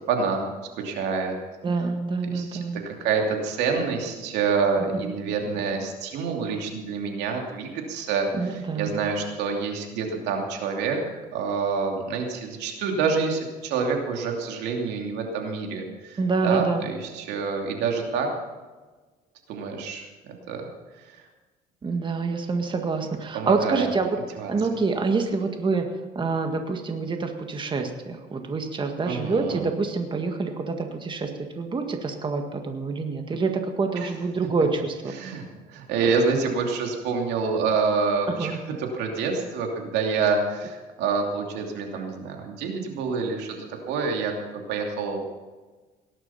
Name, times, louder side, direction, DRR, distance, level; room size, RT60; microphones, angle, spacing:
voice 1, 0.1-0.5 0.7-1.4 2.3-11.0 11.3-18.3 19.5-20.1 20.5-20.6 21.0-21.2 23.3-23.9 24.4-24.5 29.0-29.6 34.0-34.1 35.1-43.6 43.9-44.3 44.7-45.2, right 5 dB, 90° right, 2 dB, 2.8 m, -27 dB
voice 2, 1.6-2.8 4.9-5.1 8.4-9.0 16.2-16.9 21.8-24.2 24.5-25.9 26.2-31.3 31.6-35.1 38.3-38.6, right 4 dB, 30° right, 5 dB, 1.7 m, -26 dB
18.0 x 11.0 x 5.7 m, 1.3 s
cardioid pair, 110°, 17 cm